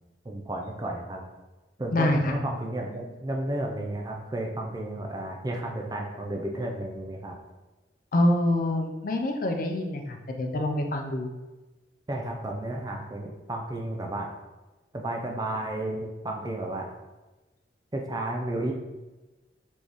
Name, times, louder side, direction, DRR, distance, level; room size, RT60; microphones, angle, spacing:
voice 1, 0.2-1.2 1.8-7.4 12.1-14.3 14.9-16.9 17.9-18.7, right 1 dB, 20° right, 1 dB, 0.4 m, -32 dB
voice 2, 1.9-2.3 8.1-11.3, left 1 dB, 50° left, 4 dB, 0.4 m, -26 dB
4.3 x 3.4 x 3.0 m, 1.1 s
head